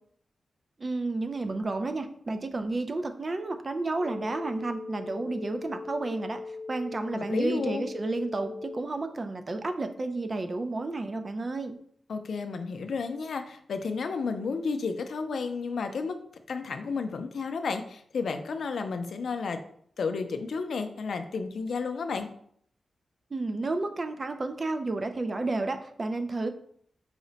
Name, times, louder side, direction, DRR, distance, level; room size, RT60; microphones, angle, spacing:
voice 1, 0.8-6.4 6.7-11.8 23.3-26.5, right 2 dB, 30° right, 7 dB, 0.3 m, -31 dB
sound 1, 4.0-9.0, left 3 dB, 20° left, 0.5 m, -40 dB
voice 2, 7.1-7.9 12.1-16.2 16.5-19.6 20.0-22.3, left 4 dB, 75° left, 7 dB, 0.4 m, -32 dB
4.9 x 2.1 x 3.8 m, 0.64 s
wide cardioid pair, 160°, 0 cm